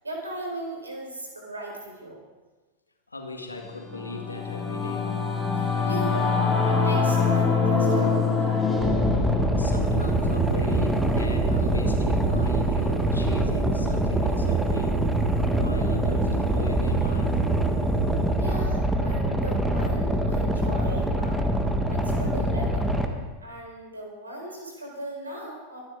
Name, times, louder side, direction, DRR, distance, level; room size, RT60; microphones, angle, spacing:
voice 1, 0.0-2.2 5.6-6.4 6.7-8.7 18.4-21.5 21.9-22.9 23.4-25.8, right 1 dB, 80° right, 0 dB, 4.7 m, -37 dB
voice 2, 3.1-5.1 9.6-15.1 15.5-17.4, left 2 dB, 80° left, 2 dB, 2.2 m, -38 dB
Singing / Musical instrument, 3.6-13.3, left 5 dB, 10° left, 2.7 m, -26 dB
Boat Water vehicle, 8.8-23.1, equal, 5° right, 1.5 m, -25 dB
sound 1, 9.5-20.8, right 13 dB, 35° right, 0.6 m, -31 dB
24.0 x 11.0 x 3.9 m, 1.2 s
figure-of-eight pair, 90°, 0 cm